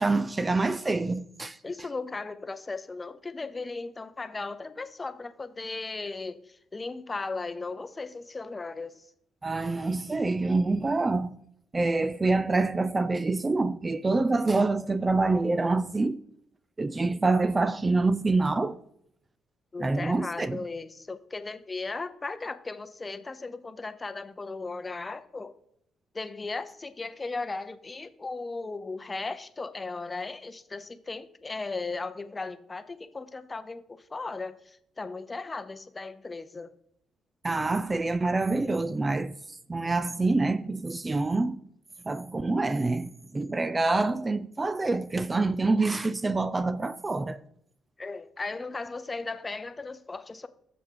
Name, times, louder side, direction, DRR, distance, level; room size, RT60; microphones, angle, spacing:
voice 1, 0.0-1.6 9.4-11.4 11.7-16.2 16.8-18.8 19.8-20.6 37.4-39.3 39.7-41.6 42.1-47.4, right 3 dB, 25° right, 0.3 m, -26 dB
voice 2, 1.6-9.1 19.7-25.5 26.1-36.7 48.0-50.5, left 3 dB, 25° left, 0.6 m, -36 dB
7.7 x 7.0 x 3.8 m
cardioid pair, 90°, 0 cm